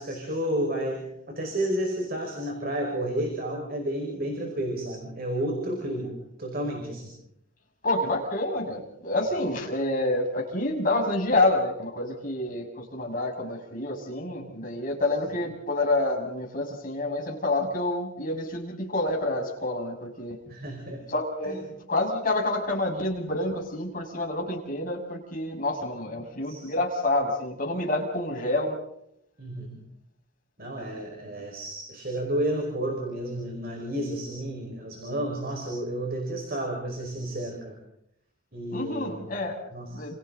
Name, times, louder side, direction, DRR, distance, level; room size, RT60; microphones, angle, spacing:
voice 1, 0.0-7.1 20.5-21.1 21.5-21.6 26.4-26.6 29.4-29.8 30.6-37.8 38.5-39.3 39.7-40.0, right 1 dB, 50° right, 2 dB, 5.2 m, -31 dB
voice 2, 7.8-20.4 21.1-28.8 38.7-39.6 39.9-40.2, left 2 dB, 45° left, 0 dB, 6.1 m, -28 dB
29.5 x 29.0 x 4.0 m, 0.76 s
head